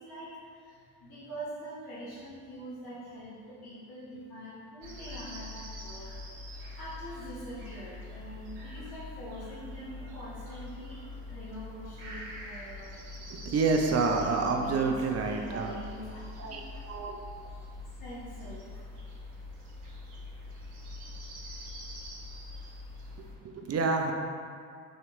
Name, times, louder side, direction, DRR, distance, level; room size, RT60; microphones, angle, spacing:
voice 1, 0.0-6.2 6.7-12.9 14.0-16.6 18.0-18.9 22.7-23.0 23.4-23.5, right 1 dB, 55° left, -10 dB, 1.2 m, -44 dB
sound 1, 4.8-23.3, left 2 dB, 75° right, 0.8 m, -44 dB
voice 2, 13.3-15.8 16.4-16.6 16.9-17.2 23.2-24.1, right 4 dB, 35° right, 2 dB, 0.5 m, -28 dB
3.7 x 2.8 x 3.2 m, 2.2 s
hypercardioid pair, 45°, 43 cm